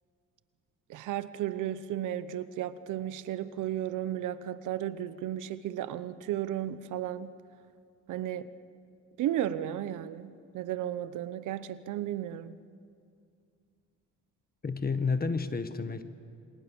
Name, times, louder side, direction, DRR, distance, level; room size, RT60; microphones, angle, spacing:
voice 1, 0.9-7.4 8.1-8.5 9.2-12.6, right 11 dB, 85° right, 14 dB, 1.0 m, -34 dB
voice 2, 14.6-16.0, left 4 dB, 30° left, 10 dB, 1.6 m, -30 dB
28.0 x 24.5 x 7.2 m, 2.4 s
cardioid pair, 90°, 30 cm